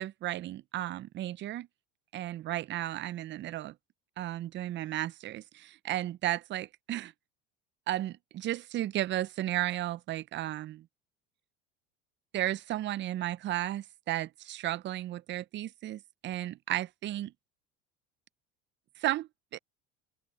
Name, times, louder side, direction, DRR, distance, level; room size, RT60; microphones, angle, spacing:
voice 1, 0.0-1.7 2.1-3.7 4.2-7.1 7.9-10.9 12.3-17.3 19.0-19.6, right 14 dB, 40° right, 0.5 m, -34 dB
open air
supercardioid pair, 95°, 30 cm